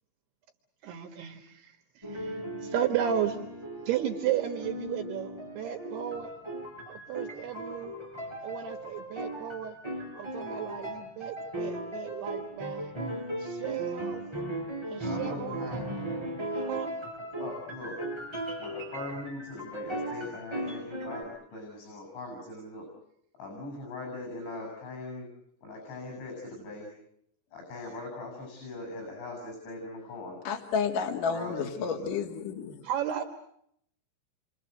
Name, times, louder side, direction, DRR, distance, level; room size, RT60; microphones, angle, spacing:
voice 1, 0.8-3.4 3.9-6.4 6.9-7.9 8.4-9.8 10.1-12.9 13.4-14.2 14.9-15.8 16.5-17.0 32.8-33.2, right 10 dB, 70° right, 5 dB, 3.5 m, -34 dB
sound 1, 2.0-21.2, right 1 dB, 5° right, 6.7 m, -37 dB
voice 2, 14.9-16.1 17.4-18.0 18.6-22.9 23.4-25.3 25.6-26.9 27.5-30.4 31.3-32.1, left 2 dB, 80° left, 3 dB, 8.9 m, -40 dB
voice 3, 30.5-32.7, left 6 dB, 55° left, 2 dB, 3.6 m, -31 dB
29.5 x 25.0 x 7.9 m, 0.73 s
omnidirectional pair, 5.1 m